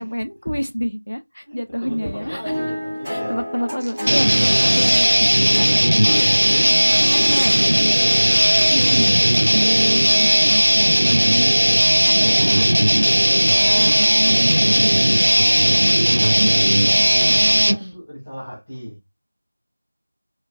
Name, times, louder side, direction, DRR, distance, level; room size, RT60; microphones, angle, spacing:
voice 1, 0.0-2.4 3.1-5.3 6.1-6.7 8.7-9.1 9.5-11.5 12.1-12.7 13.3-17.4, equal, 75° left, 0.7 m, -28 dB
voice 2, 1.4-3.4 6.8-7.7 9.0-9.1 17.4-19.0, equal, 15° left, 1.7 m, -35 dB
sound 1, 1.9-7.5, equal, ahead, 1.7 m, -30 dB
sound 2, 3.8-5.7 6.0-6.1 6.3-6.4 6.7-9.5, right 1 dB, 40° right, 0.7 m, -33 dB
sound 3, 4.1-17.8, equal, 65° right, 0.3 m, -16 dB
4.4 x 2.3 x 2.4 m
figure-of-eight pair, 175°, 0 cm